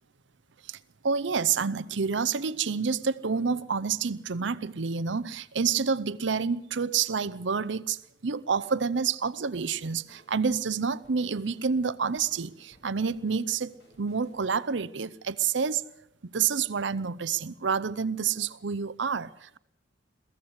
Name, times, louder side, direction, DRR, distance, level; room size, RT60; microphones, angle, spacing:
voice 1, 1.0-15.9 16.3-19.6, right 6 dB, 70° right, 0.7 m, -28 dB
sound 1, 9.5-15.8, left 1 dB, 60° left, 7.6 m, -60 dB
22.5 x 15.5 x 8.1 m
head